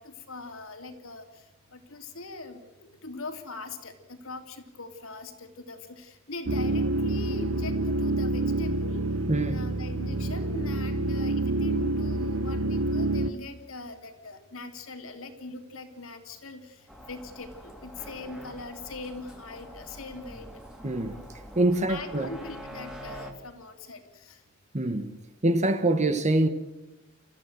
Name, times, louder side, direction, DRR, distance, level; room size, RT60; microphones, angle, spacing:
voice 1, 0.0-1.4 1.7-9.1 9.5-20.5 21.9-24.4, left 3 dB, 75° left, 3.1 m, -41 dB
sound 1, 6.5-13.3, right 2 dB, 70° right, 1.0 m, -27 dB
voice 2, 9.3-9.6 20.8-21.1 21.6-22.3 24.7-25.1 25.4-26.5, right 2 dB, 35° right, 1.3 m, -24 dB
sound 2, 16.9-23.3, equal, 5° right, 2.7 m, -45 dB
30.0 x 14.5 x 7.8 m
head